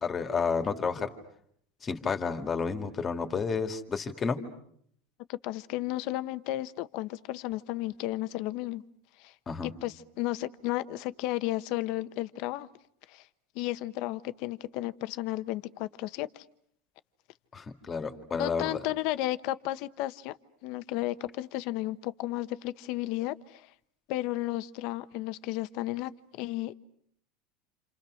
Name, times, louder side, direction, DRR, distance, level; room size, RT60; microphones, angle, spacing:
voice 1, 0.0-1.1 1.8-4.4 9.5-9.7 17.5-18.8, left 5 dB, 25° left, 2.3 m, -31 dB
voice 2, 5.3-8.8 9.2-9.3 9.6-12.7 13.1-13.3 13.5-16.4 18.3-20.4 20.6-23.7 24.1-26.7, left 16 dB, 60° left, 1.0 m, -33 dB
28.5 x 28.0 x 6.4 m
supercardioid pair, 140°, 0 cm